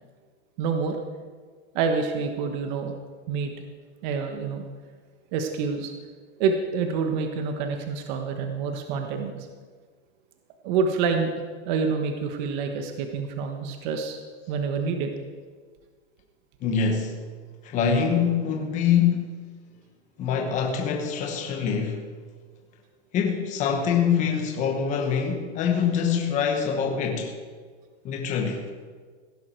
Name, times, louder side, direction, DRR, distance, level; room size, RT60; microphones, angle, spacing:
voice 1, 0.6-1.0 1.7-2.9 3.3-3.5 4.0-4.6 5.3-5.9 6.4-9.3 10.6-11.3 11.6-14.2 14.5-15.1, right 5 dB, 40° right, 5 dB, 1.3 m, -27 dB
voice 2, 16.6-17.3 17.6-19.3 20.2-22.1 23.1-27.3 28.0-28.6, left 7 dB, 20° left, 2 dB, 1.2 m, -24 dB
16.5 x 11.0 x 4.5 m, 1.5 s
supercardioid pair, 165°, 34 cm